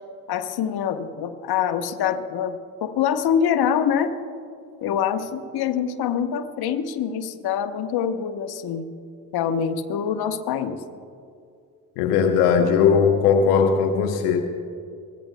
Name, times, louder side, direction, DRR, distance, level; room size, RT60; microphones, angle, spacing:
voice 1, 0.3-4.1 4.8-8.8 9.3-10.8, left 8 dB, 55° left, 7 dB, 1.0 m, -25 dB
voice 2, 12.0-14.4, left 6 dB, 75° left, 5 dB, 1.0 m, -18 dB
23.0 x 16.5 x 2.2 m, 2.4 s
hypercardioid pair, 45°, 46 cm